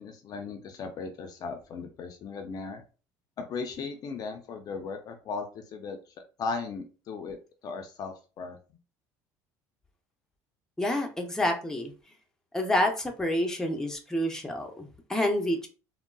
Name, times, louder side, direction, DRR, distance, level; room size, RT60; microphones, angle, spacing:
voice 1, 0.0-2.8 3.4-6.0 6.4-8.6, left 4 dB, 45° left, 5 dB, 0.5 m, -37 dB
voice 2, 10.8-11.9 12.5-15.7, left 1 dB, 5° left, 3 dB, 0.6 m, -28 dB
3.6 x 2.0 x 2.2 m, 0.34 s
supercardioid pair, 105°, 9 cm